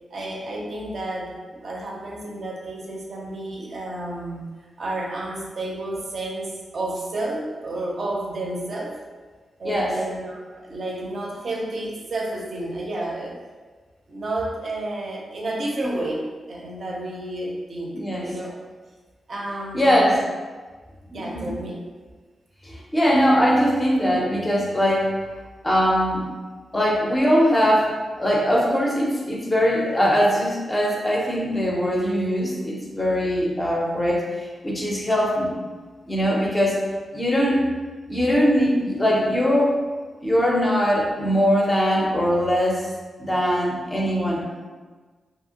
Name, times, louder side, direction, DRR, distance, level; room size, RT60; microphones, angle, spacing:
voice 1, 0.1-4.5 4.8-8.9 9.6-13.3 14.1-16.2 16.5-18.6 19.3-20.2 21.0-21.8, right 1 dB, 50° right, -2 dB, 0.5 m, -31 dB
voice 2, 9.6-10.0 17.9-18.3 19.7-20.2 21.1-21.5 22.6-25.1 25.6-26.3 26.7-35.6 36.1-36.8 37.1-37.7 38.1-39.7 40.2-42.8 43.2-44.7, equal, 15° left, -3 dB, 0.5 m, -21 dB
2.7 x 2.7 x 2.7 m, 1.4 s
wide cardioid pair, 150°, 0 cm